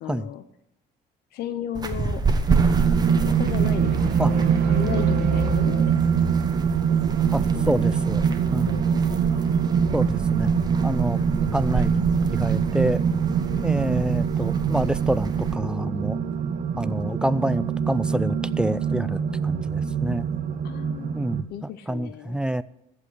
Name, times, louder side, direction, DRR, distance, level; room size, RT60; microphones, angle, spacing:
voice 1, 0.0-0.4 1.3-2.3 3.0-5.9 7.5-7.9 8.7-9.4 11.1-11.6 20.6-21.2 21.5-22.4, left 10 dB, 70° left, 10 dB, 0.7 m, -35 dB
sound 1, 1.7-15.5, right 4 dB, 25° right, 1.0 m, -30 dB
sound 2, 2.5-21.4, right 7 dB, 50° right, 0.8 m, -24 dB
sound 3, 3.5-6.5, right 3 dB, 70° right, 1.2 m, -30 dB
voice 2, 7.3-8.8 9.9-10.6 10.8-11.2 11.5-13.0 13.6-16.2 16.8-20.3 21.1-21.5 21.9-22.6, right 1 dB, 5° right, 17 dB, 0.3 m, -27 dB
14.0 x 5.2 x 8.0 m, 0.84 s
cardioid pair, 110°, 17 cm